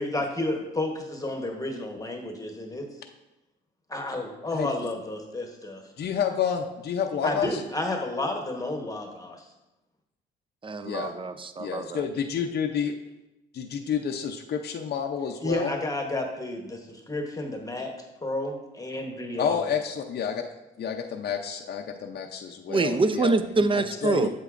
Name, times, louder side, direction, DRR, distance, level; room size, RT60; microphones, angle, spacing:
voice 1, 0.0-2.9 3.9-5.8 7.2-9.5 15.4-17.9 18.2-19.6, left 2 dB, 15° left, 3 dB, 1.1 m, -31 dB
voice 2, 6.0-7.6 10.8-11.1 11.6-12.9 13.5-15.7 19.4-20.4 20.8-23.3 24.0-24.3, left 7 dB, 55° left, 3 dB, 0.6 m, -29 dB
voice 3, 10.6-12.1 22.7-24.3, right 3 dB, 25° right, 10 dB, 0.6 m, -25 dB
8.1 x 7.7 x 2.5 m, 0.97 s
cardioid pair, 90°, 20 cm